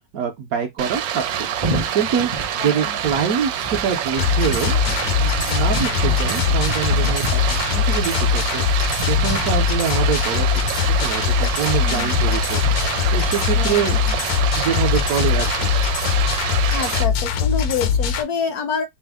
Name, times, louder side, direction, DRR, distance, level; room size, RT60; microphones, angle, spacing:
voice 1, 0.1-1.5 1.9-2.3 2.6-10.5 10.8-12.6 13.1-14.0 14.6-15.7, right 7 dB, 65° right, 0.9 m, -25 dB
Stream, 0.8-17.0, right 10 dB, 90° right, 1.3 m, -26 dB
sound 1, 1.6-15.5, right 1 dB, 35° right, 0.7 m, -33 dB
voice 2, 2.6-2.9 11.8-12.1 13.5-14.2 16.7-18.8, left 6 dB, 70° left, 0.9 m, -27 dB
sound 2, 4.2-18.2, left 7 dB, 85° left, 1.4 m, -21 dB
5.0 x 2.0 x 3.4 m
omnidirectional pair, 2.0 m